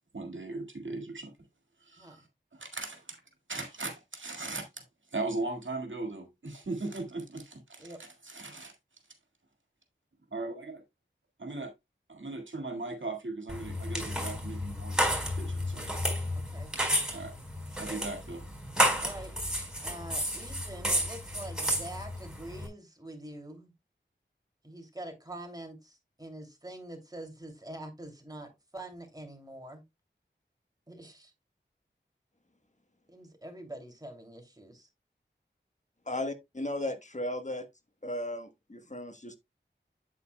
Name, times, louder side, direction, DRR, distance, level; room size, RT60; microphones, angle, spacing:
voice 1, 0.1-1.3 1.8-2.3 2.5-3.2 3.5-4.8 5.1-8.7 10.3-10.7 11.4-11.7 12.1-15.9 17.1-17.3 17.8-18.5, right 2 dB, 75° right, 1.9 m, -38 dB
sound 1, 13.5-22.7, equal, 5° right, 4.4 m, -31 dB
voice 2, 19.0-19.3 19.8-23.7 24.6-29.8 30.9-31.3 33.1-34.9, right 1 dB, 20° right, 2.7 m, -45 dB
voice 3, 36.1-37.6 38.0-39.4, left 1 dB, 40° left, 1.2 m, -35 dB
8.3 x 8.2 x 2.2 m
wide cardioid pair, 50°, 20 cm